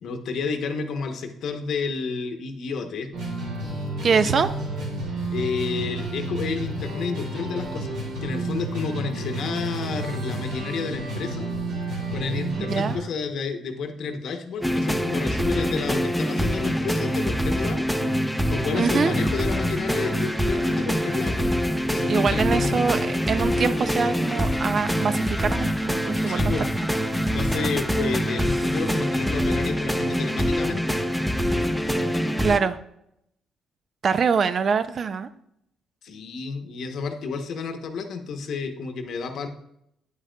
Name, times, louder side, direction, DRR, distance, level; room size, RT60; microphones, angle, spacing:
voice 1, 0.0-3.1 4.2-4.5 5.3-11.5 12.1-17.8 18.5-21.5 21.8-23.1 26.3-26.7 27.3-31.0 36.0-39.5, left 5 dB, 70° left, 6 dB, 0.8 m, -30 dB
sound 1, 3.1-13.0, right 2 dB, 80° right, 2.8 m, -31 dB
voice 2, 4.0-4.5 12.6-13.0 18.7-19.2 22.1-26.4 26.8-26.9 32.4-32.8 34.0-35.3, right 5 dB, 50° right, 13 dB, 0.4 m, -24 dB
sound 2, 14.6-32.6, equal, ahead, 0.5 m, -25 dB
8.9 x 6.3 x 2.2 m, 0.77 s
cardioid pair, 90°, 0 cm